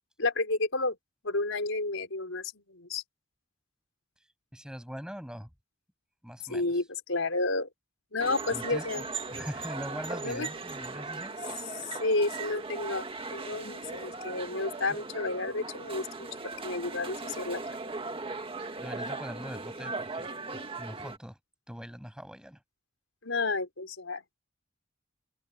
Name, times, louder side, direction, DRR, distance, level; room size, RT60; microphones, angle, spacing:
voice 1, 0.2-1.0 1.2-3.0 6.5-7.7 8.1-9.0 10.2-10.5 11.7-17.9 23.2-24.4, left 2 dB, 80° left, 4.4 m, -31 dB
voice 2, 4.5-5.5 6.2-6.6 8.5-11.3 14.9-15.0 18.8-20.3 20.8-21.4 21.7-22.6, equal, 5° right, 8.0 m, -42 dB
sound 1, 8.2-21.2, right 3 dB, 30° right, 2.1 m, -38 dB
open air
head